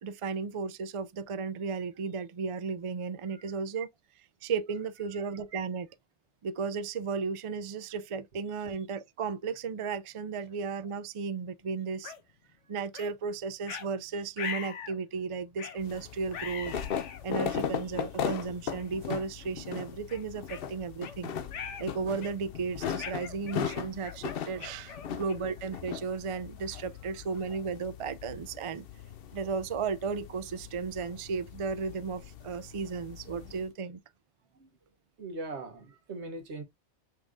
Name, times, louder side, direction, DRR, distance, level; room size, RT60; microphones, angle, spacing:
voice 1, 0.0-3.9 4.4-5.9 6.4-12.1 12.7-16.7 17.2-21.3 21.8-28.9 29.3-34.0, right 5 dB, 50° right, 0.3 m, -34 dB
sound 1, 12.0-12.2 12.9-13.1 13.7-13.9 14.4-15.0 15.6-15.8 16.3-17.2 18.0-18.1 18.8-19.0 19.4-19.5 20.1-21.2 21.5-21.9 22.2-22.5 23.0-25.6, left 7 dB, 80° left, 1.2 m, -41 dB
sound 2, 15.8-33.6, left 8 dB, 60° left, 0.8 m, -38 dB
voice 2, 35.2-36.6, right 2 dB, 70° right, 1.4 m, -41 dB
5.7 x 3.6 x 2.4 m
omnidirectional pair, 1.2 m